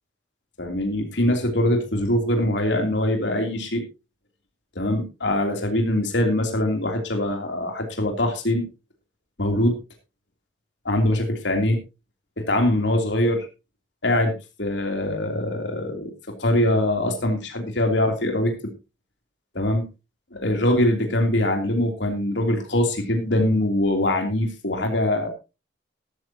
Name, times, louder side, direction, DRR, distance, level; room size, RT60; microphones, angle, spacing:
voice 1, 0.6-3.8 4.7-8.7 9.4-9.8 10.8-11.8 12.4-13.5 14.0-14.3 14.6-16.1 16.4-18.5 19.5-19.8 20.3-25.3, left 1 dB, 80° left, 3 dB, 3.1 m, -23 dB
14.0 x 14.0 x 2.9 m, 0.28 s
head